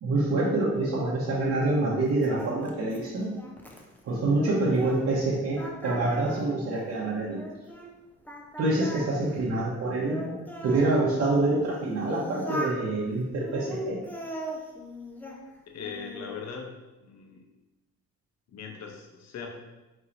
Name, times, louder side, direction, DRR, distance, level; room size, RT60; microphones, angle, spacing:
voice 1, 0.0-3.3 4.0-7.4 8.6-10.2 10.6-14.0, right 2 dB, 60° right, -7 dB, 1.0 m, -26 dB
Singing, 0.7-5.3 5.5-7.9 8.3-10.9 11.5-12.8 13.4-15.4 15.8-16.4, equal, 5° left, 0.6 m, -40 dB
voice 2, 15.7-16.7 17.0-17.5 18.5-19.5, left 6 dB, 60° left, 2 dB, 0.8 m, -40 dB
4.6 x 4.0 x 2.6 m, 1.1 s
cardioid pair, 90°, 30 cm